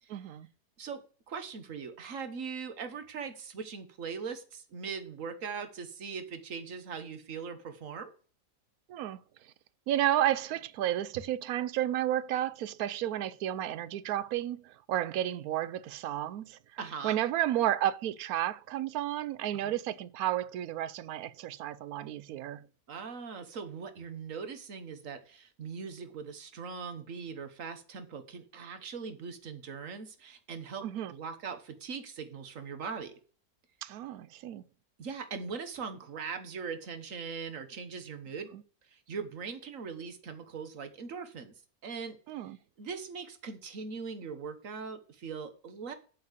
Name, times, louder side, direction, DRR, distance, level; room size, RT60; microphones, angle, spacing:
voice 1, 0.1-0.5 8.9-9.2 9.9-16.6 17.0-22.6 30.8-31.1 33.8-34.6 42.3-42.6, right 12 dB, 80° right, 1.0 m, -32 dB
voice 2, 1.3-8.1 16.8-17.2 19.6-19.7 22.9-33.1 35.0-38.5 38.9-41.5 41.8-45.9, right 5 dB, 60° right, 1.5 m, -40 dB
8.4 x 4.7 x 6.5 m
omnidirectional pair, 1.6 m